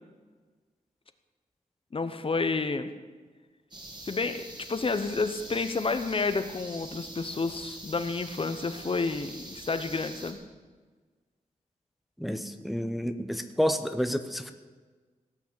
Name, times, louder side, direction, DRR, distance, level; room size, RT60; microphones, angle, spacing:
voice 1, 1.9-2.9 4.0-4.4 4.7-10.4, left 4 dB, 40° left, 10 dB, 0.9 m, -30 dB
sound 1, 3.7-10.3, right 1 dB, 30° right, 2.9 m, -44 dB
voice 2, 12.2-14.5, equal, ahead, 8 dB, 0.8 m, -29 dB
17.5 x 6.1 x 8.8 m, 1.4 s
wide cardioid pair, 110°, 14 cm